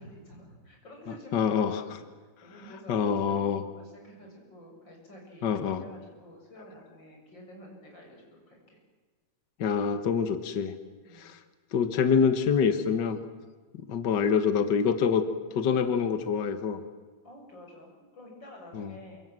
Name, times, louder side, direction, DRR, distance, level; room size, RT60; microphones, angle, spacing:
voice 1, 0.0-8.8 11.0-11.3 17.2-19.2, equal, 30° left, 0 dB, 8.0 m, -49 dB
voice 2, 1.3-1.8 2.9-3.6 5.4-5.8 9.6-10.7 11.1-11.4 11.7-13.2 13.9-15.2 15.5-16.8 18.7-18.9, left 6 dB, 75° left, 10 dB, 1.0 m, -26 dB
28.0 x 25.5 x 7.7 m, 1.4 s
omnidirectional pair, 4.1 m